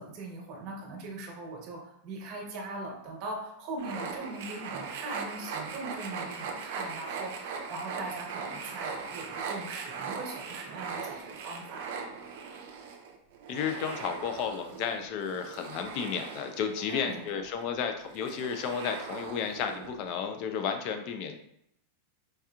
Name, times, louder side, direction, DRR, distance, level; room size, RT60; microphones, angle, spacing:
voice 1, 0.0-12.0 16.9-17.3, right 2 dB, 45° right, 0 dB, 1.2 m, -40 dB
sound 1, 3.8-20.2, right 5 dB, 65° right, 0.6 m, -40 dB
voice 2, 13.5-21.4, left 7 dB, 50° left, 6 dB, 0.5 m, -33 dB
4.6 x 2.8 x 2.4 m, 0.76 s
supercardioid pair, 130°, 0 cm